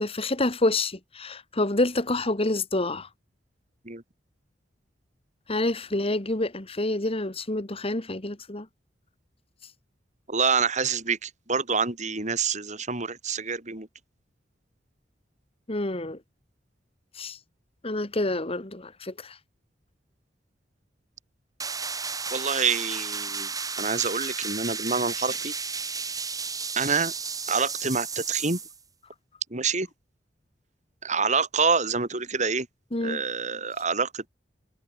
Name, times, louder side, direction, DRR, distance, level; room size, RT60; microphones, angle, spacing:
voice 1, 0.0-3.1 5.5-8.7 15.7-16.2 17.2-17.4 17.8-19.4 32.9-33.2, left 2 dB, 30° left, 2.0 m, -27 dB
voice 2, 10.3-13.9 22.3-23.5 23.8-25.5 26.8-27.1 27.5-28.6 29.5-29.9 31.0-32.7 33.0-34.3, right 5 dB, 40° right, 3.8 m, -27 dB
sound 1, 21.6-28.8, right 5 dB, 20° right, 6.2 m, -33 dB
head